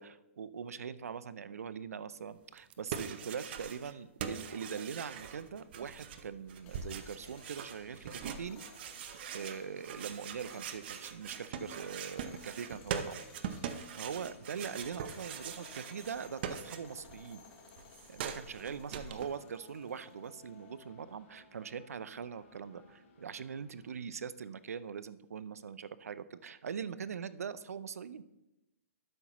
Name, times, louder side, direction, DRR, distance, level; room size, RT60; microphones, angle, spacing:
voice 1, 0.0-8.6 9.3-13.2 14.0-17.4 18.1-28.2, right 7 dB, 90° right, 16 dB, 0.4 m, -42 dB
sound 1, 2.6-3.9 4.2-17.2 17.4-19.3, right 7 dB, 45° right, 0.6 m, -42 dB
sound 2, 6.5-20.6, left 6 dB, 30° left, 1.2 m, -59 dB
sound 3, 13.7-24.0, left 3 dB, 55° left, 3.3 m, -62 dB
12.0 x 5.9 x 3.0 m, 0.97 s
hypercardioid pair, 155°, 8 cm